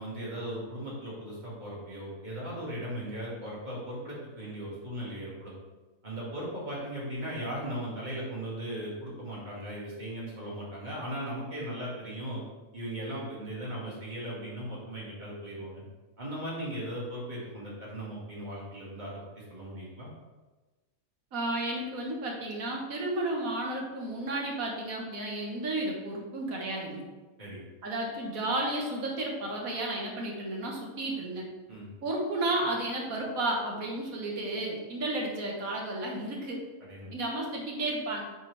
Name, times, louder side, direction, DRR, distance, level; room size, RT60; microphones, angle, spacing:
voice 1, 0.0-5.5 6.0-12.4 12.7-15.8 16.2-20.1 27.4-27.6 31.7-31.9 36.8-37.1, right 1 dB, 30° right, -6 dB, 2.2 m, -38 dB
voice 2, 21.3-27.0 27.8-31.5 32.0-36.6 37.1-38.2, right 2 dB, 70° right, -1 dB, 1.7 m, -32 dB
8.0 x 4.4 x 3.3 m, 1.2 s
omnidirectional pair, 1.5 m